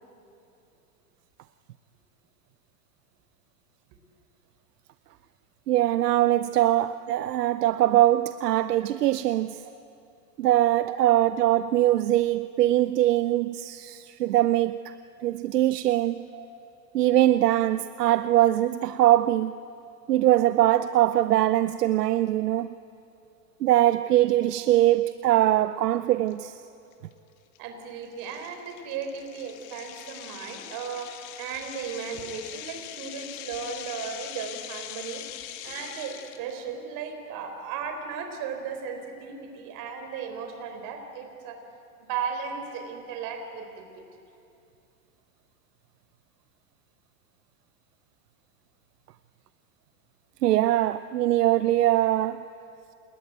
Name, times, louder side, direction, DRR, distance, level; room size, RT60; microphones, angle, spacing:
voice 1, 5.7-9.6 10.4-14.9 15.2-16.3 16.9-19.5 20.1-22.7 23.6-26.6 50.4-52.5, right 14 dB, 90° right, 0.7 m, -22 dB
sound 1, 26.3-26.4 26.9-27.1 27.6-27.7 28.2-36.5, left 12 dB, 50° left, 2.1 m, -42 dB
voice 2, 27.6-35.2 35.6-41.6 42.0-44.1, right 6 dB, 45° right, 4.4 m, -36 dB
28.0 x 20.0 x 9.3 m
hypercardioid pair, 125°, 46 cm